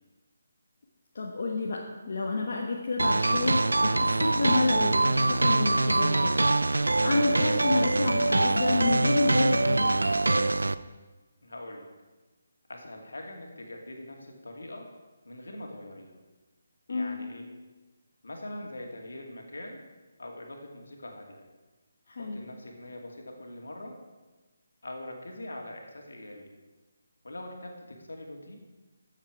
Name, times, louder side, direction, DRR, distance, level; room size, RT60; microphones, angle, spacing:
voice 1, 1.1-1.8 2.1-6.4 6.7-9.9 16.9-17.2 22.1-22.4, left 3 dB, 55° left, -1 dB, 1.3 m, -29 dB
sound 1, 3.0-10.7, right 2 dB, 80° right, 0.4 m, -24 dB
voice 2, 11.4-11.9 12.7-14.9 15.3-16.1 16.9-17.5 18.2-19.8 20.2-21.5 22.2-24.0 24.8-26.5 27.2-28.6, left 1 dB, 75° left, 1 dB, 2.3 m, -42 dB
13.5 x 7.4 x 4.9 m, 1.2 s
figure-of-eight pair, 150°, 0 cm